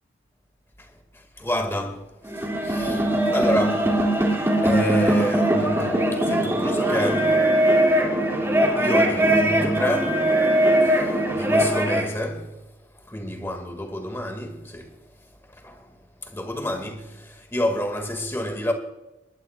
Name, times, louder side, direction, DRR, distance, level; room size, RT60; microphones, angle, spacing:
voice 1, 0.8-4.0 4.6-7.4 8.8-10.3 10.8-12.6 13.0-14.9 15.5-16.0 16.2-18.7, equal, 10° left, 2.0 m, -29 dB
sound 1, 2.2-12.1, right 1 dB, 15° right, 2.5 m, -21 dB
22.5 x 20.0 x 2.4 m
head